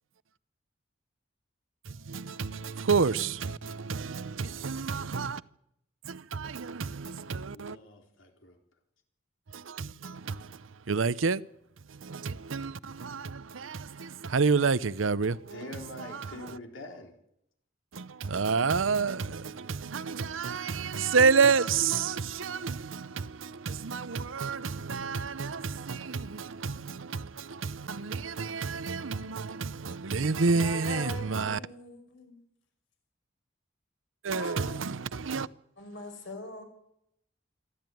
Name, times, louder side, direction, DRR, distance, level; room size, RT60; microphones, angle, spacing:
voice 1, 1.9-5.4 6.0-7.8 9.5-11.4 11.9-15.7 16.0-16.6 17.9-31.6 34.2-35.5, right 5 dB, 90° right, 0.7 m, -30 dB
voice 2, 7.5-8.6 15.5-17.1, left 2 dB, 90° left, 3.9 m, -44 dB
voice 3, 30.5-32.4 34.3-34.9 35.8-36.6, left 1 dB, 65° left, 5.6 m, -41 dB
26.5 x 12.5 x 9.3 m
head